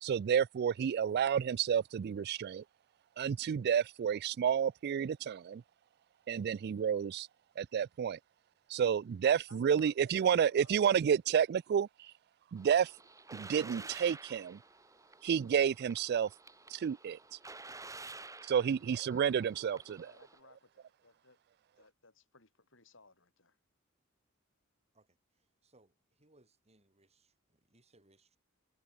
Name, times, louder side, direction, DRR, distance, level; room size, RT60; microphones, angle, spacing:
voice 1, 0.0-2.6 3.2-5.6 6.3-7.3 7.6-8.2 8.7-12.1 12.5-12.9 13.3-14.6 15.2-16.3 16.7-17.4 18.4-20.0, right 8 dB, 50° right, 0.3 m, -30 dB
voice 2, 9.2-11.0 18.5-21.4 21.8-23.6, left 3 dB, 65° left, 7.7 m, -62 dB
sound 1, 12.6-20.4, right 3 dB, 15° right, 3.1 m, -51 dB
voice 3, 25.4-28.4, right 2 dB, 30° right, 7.7 m, -68 dB
open air
head